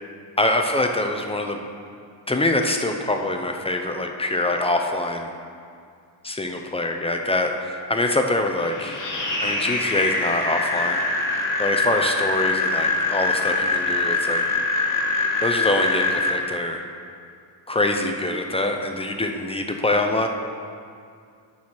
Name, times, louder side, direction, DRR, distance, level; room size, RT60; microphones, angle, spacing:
voice 1, 0.4-1.6 2.3-5.3 6.2-9.0 9.4-11.0 11.6-14.5 15.4-16.9 17.7-20.3, left 2 dB, 15° left, 4 dB, 0.4 m, -24 dB
sound 1, 8.6-16.3, left 3 dB, 45° left, 1.3 m, -24 dB
8.5 x 6.3 x 4.4 m, 2.3 s
wide cardioid pair, 140°, 43 cm